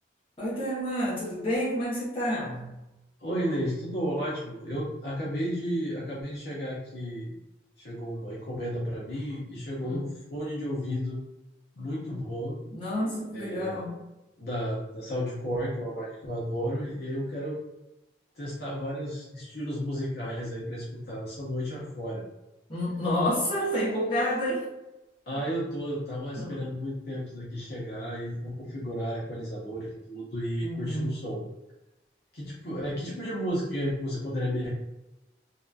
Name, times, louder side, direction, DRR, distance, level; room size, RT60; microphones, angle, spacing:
voice 1, 0.4-2.8 9.8-10.1 12.7-14.1 22.7-24.7 26.4-26.5 30.6-31.2, equal, 30° left, -7 dB, 0.9 m, -29 dB
voice 2, 3.2-7.3 7.8-11.2 11.8-12.6 13.3-13.8 14.4-17.6 18.4-22.2 25.3-31.4 32.3-34.7, equal, 55° left, -6 dB, 0.6 m, -33 dB
2.6 x 2.2 x 2.4 m, 0.98 s
head